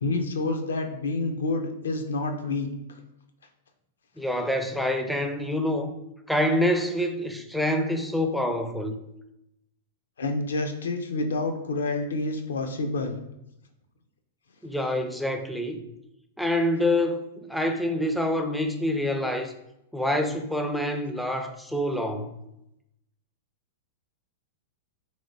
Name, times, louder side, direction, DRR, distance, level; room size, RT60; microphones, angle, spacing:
voice 1, 0.0-2.7 10.2-13.1, left 2 dB, 90° left, 0.5 m, -28 dB
voice 2, 4.2-5.9 6.3-9.0 14.6-15.8 16.4-19.5 19.9-22.3, left 1 dB, ahead, 0.4 m, -26 dB
3.3 x 3.1 x 2.7 m
hypercardioid pair, 120°, 0 cm